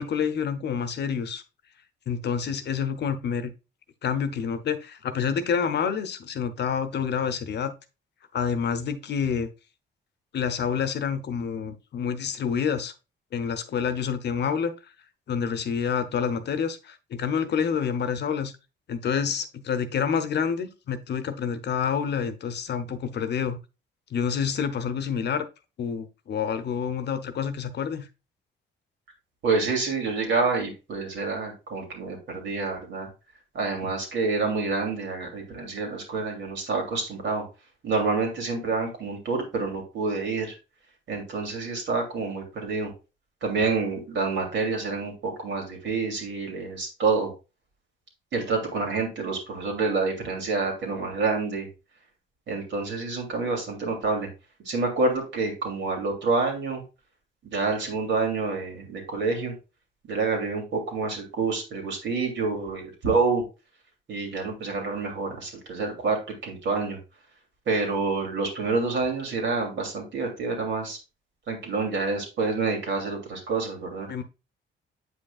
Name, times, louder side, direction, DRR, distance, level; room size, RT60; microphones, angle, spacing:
voice 1, 0.0-1.4 2.1-3.5 4.0-7.7 8.3-9.5 10.3-12.9 13.3-14.7 15.3-18.5 18.9-23.6 24.1-25.5 25.8-28.1 74.1-74.2, left 7 dB, 60° left, 0.8 m, -28 dB
voice 2, 29.4-33.1 33.5-37.4 37.8-40.5 41.1-42.9 43.4-47.3 48.3-51.7 52.5-54.3 54.6-56.8 57.4-59.5 60.1-63.4 64.1-67.0 67.7-71.0 71.5-74.1, right 4 dB, 65° right, 2.7 m, -28 dB
7.9 x 5.4 x 2.4 m
cardioid pair, 90°, 20 cm